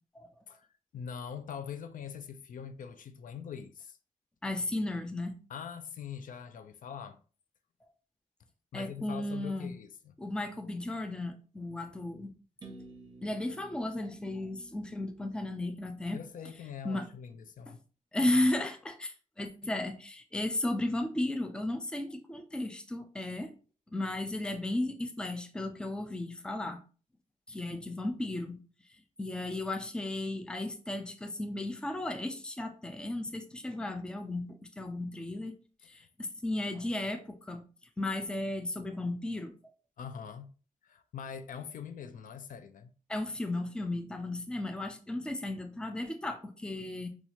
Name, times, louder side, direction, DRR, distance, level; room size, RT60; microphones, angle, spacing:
voice 1, 0.9-4.0 5.5-7.2 8.7-10.1 16.1-17.8 35.8-36.1 40.0-40.5 40.8-42.9, left 7 dB, 80° left, 0.4 m, -43 dB
voice 2, 4.4-5.4 8.7-9.7 10.2-12.3 13.2-16.2 16.8-17.1 17.7-17.8 18.1-23.5 23.9-26.8 27.5-28.6 29.2-35.5 35.9-37.6 38.0-39.5 43.1-47.1, left 1 dB, 5° left, 0.4 m, -34 dB
sound 1, 12.6-16.5, right 2 dB, 35° right, 0.7 m, -53 dB
4.2 x 2.4 x 2.8 m
wide cardioid pair, 175°, 14 cm